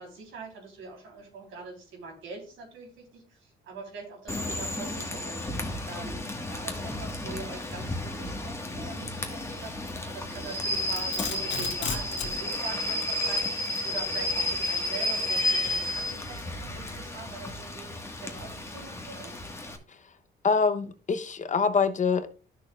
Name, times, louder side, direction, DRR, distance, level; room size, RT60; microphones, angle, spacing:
voice 1, 0.0-5.4 5.9-9.7 10.0-19.4, right 3 dB, 85° right, 3.5 m, -43 dB
Rain / Train, 4.3-19.8, left 1 dB, 15° left, 1.4 m, -32 dB
Domestic sounds home sounds, 10.5-12.4, left 6 dB, 70° left, 1.7 m, -34 dB
voice 2, 20.4-22.3, left 5 dB, 40° left, 0.8 m, -25 dB
12.0 x 6.4 x 2.4 m
cardioid pair, 90°, 20 cm